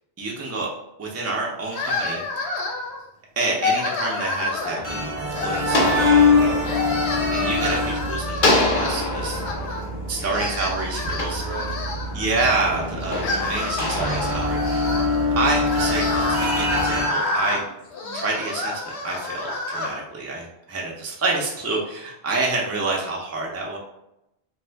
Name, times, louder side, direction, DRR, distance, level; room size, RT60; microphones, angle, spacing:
voice 1, 0.2-0.7 1.0-2.2 3.4-6.5 7.3-9.4 10.1-11.4 12.1-15.1 15.4-17.6 18.1-23.8, right 3 dB, 20° right, -2 dB, 0.4 m, -28 dB
sound 1, 1.7-3.0 3.4-4.9 5.3-6.3 6.6-9.9 10.2-12.5 13.0-19.9, left 3 dB, 85° left, 0.9 m, -29 dB
sound 2, 4.2-7.9 8.4-12.1 12.7-15.4, left 2 dB, 55° left, 0.7 m, -28 dB
sound 3, 4.8-17.1, left 3 dB, 40° right, 0.8 m, -24 dB
voice 2, 6.3-7.1 10.2-11.9, right 3 dB, 75° right, 0 dB, 1.0 m, -37 dB
2.6 x 2.4 x 3.3 m, 0.85 s
omnidirectional pair, 1.1 m